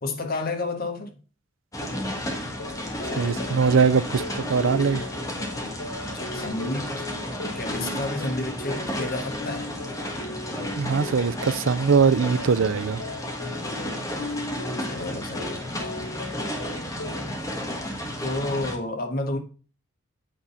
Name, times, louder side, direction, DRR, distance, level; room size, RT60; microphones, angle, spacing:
voice 1, 0.0-1.1 6.1-7.1 7.5-9.7 14.8-15.7 18.2-19.4, left 2 dB, 45° left, 1.4 m, -30 dB
sound 1, 1.7-18.8, left 1 dB, 15° left, 1.3 m, -33 dB
sound 2, 2.5-17.3, left 2 dB, 85° left, 0.8 m, -39 dB
voice 2, 3.2-5.0 10.8-13.0, right 5 dB, 65° right, 0.4 m, -21 dB
8.5 x 3.9 x 5.6 m
head